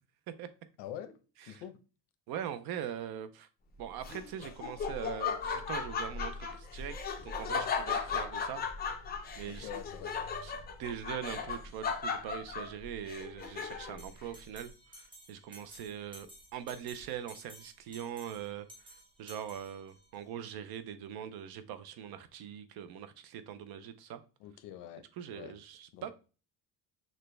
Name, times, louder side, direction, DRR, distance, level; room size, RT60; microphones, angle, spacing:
voice 1, 0.8-1.8 9.5-10.2 24.4-25.0 25.3-25.6 25.9-26.1, left 9 dB, 80° left, 0.8 m, -45 dB
voice 2, 2.3-3.5 3.8-8.6 9.3-9.7 10.4-10.5 10.8-24.2 25.2-26.1, right 9 dB, 60° right, 0.6 m, -42 dB
Laughter, 4.0-14.1, left 5 dB, 25° left, 0.4 m, -36 dB
Bell, 14.0-20.2, right 1 dB, 10° right, 0.8 m, -55 dB
6.3 x 2.2 x 3.2 m
cardioid pair, 175°, 42 cm